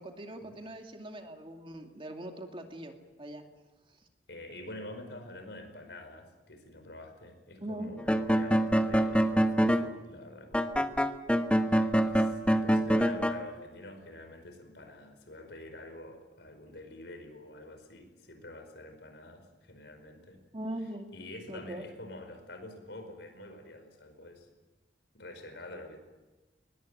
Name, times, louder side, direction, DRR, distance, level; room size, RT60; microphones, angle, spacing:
voice 1, 0.0-3.5 7.6-7.9 20.5-21.1 21.5-21.9, right 1 dB, 30° right, 4 dB, 2.5 m, -41 dB
voice 2, 4.3-10.9 11.7-20.4 21.1-24.5 25.1-26.0, left 1 dB, 70° left, 7 dB, 5.0 m, -47 dB
sound 1, 8.0-9.9 10.5-13.4, equal, 5° left, 1.1 m, -25 dB
22.0 x 20.5 x 9.2 m, 1.2 s
head